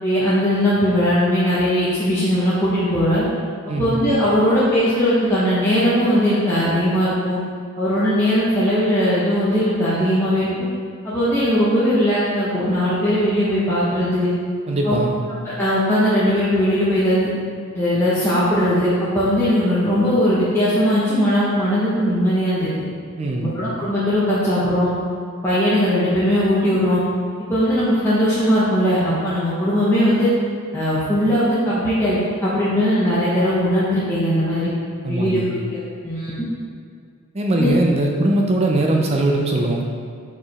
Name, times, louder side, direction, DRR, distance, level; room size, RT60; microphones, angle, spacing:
voice 1, 0.0-3.3 3.8-7.4 7.8-10.5 11.0-14.3 14.8-15.0 15.3-17.3 17.7-22.7 23.3-24.9 25.4-27.0 27.5-30.3 30.7-32.2 32.4-34.7 35.1-35.8 36.0-36.5 37.5-37.7, equal, 10° left, -11 dB, 0.9 m, -19 dB
voice 2, 3.7-4.0 14.7-15.2 23.2-23.5 35.0-35.5 37.3-39.9, right 1 dB, 30° right, 0 dB, 0.4 m, -20 dB
4.9 x 4.7 x 4.2 m, 2.1 s
head